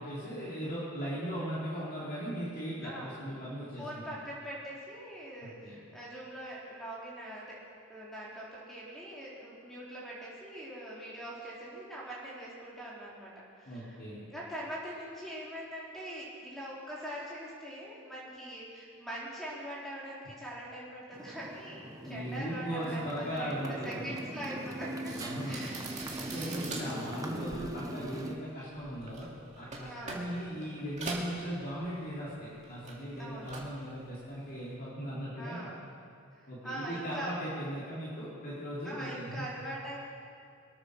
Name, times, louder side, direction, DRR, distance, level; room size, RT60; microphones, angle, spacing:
voice 1, 0.0-3.9 5.4-5.8 13.7-14.3 22.0-24.1 25.2-25.6 26.2-29.3 29.5-35.6 36.5-39.4, equal, 45° left, -9 dB, 3.5 m, -38 dB
voice 2, 2.8-3.2 3.8-7.6 7.9-14.0 14.3-23.5 23.8-25.8 27.3-27.6 29.9-30.3 33.2-33.6 35.4-35.8 36.3-37.3 38.8-40.0, right 1 dB, ahead, -7 dB, 3.8 m, -43 dB
Motorcycle, 21.1-28.4, right 1 dB, 15° right, 0.9 m, -41 dB
sound 1, 25.0-32.3 32.5-33.8 34.1-34.5, right 3 dB, 30° right, 2.3 m, -43 dB
23.0 x 9.2 x 6.5 m, 2.4 s
head